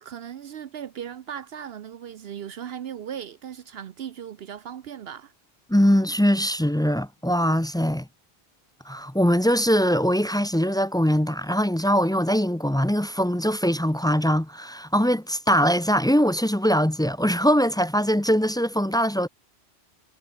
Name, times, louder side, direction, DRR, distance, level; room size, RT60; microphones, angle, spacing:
voice 1, 0.0-5.3, right 9 dB, 65° right, 0.9 m, -37 dB
voice 2, 5.7-8.1 8.9-19.3, equal, 5° left, 0.4 m, -22 dB
omnidirectional pair, 1.1 m